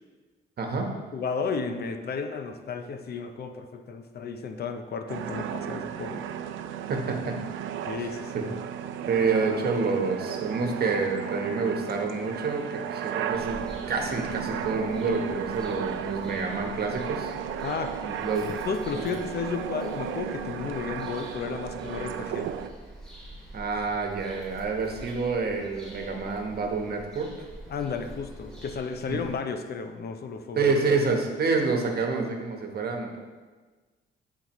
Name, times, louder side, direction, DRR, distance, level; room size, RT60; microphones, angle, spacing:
voice 1, 0.6-0.9 6.9-7.4 8.0-8.5 9.1-13.6 13.9-17.3 18.0-18.5 18.9-19.0 23.5-27.3 29.1-29.2 30.5-33.2, right 4 dB, 50° right, 2 dB, 1.3 m, -28 dB
voice 2, 1.1-6.2 7.9-8.5 17.6-18.0 18.5-22.5 27.7-30.7, left 5 dB, 55° left, 7 dB, 0.6 m, -33 dB
sound 1, 5.1-22.7, right 8 dB, 80° right, 0.5 m, -35 dB
Bird vocalization bird call bird song, 13.3-29.3, right 1 dB, 5° left, 2.2 m, -46 dB
12.0 x 4.2 x 3.1 m, 1.4 s
cardioid pair, 90°, 20 cm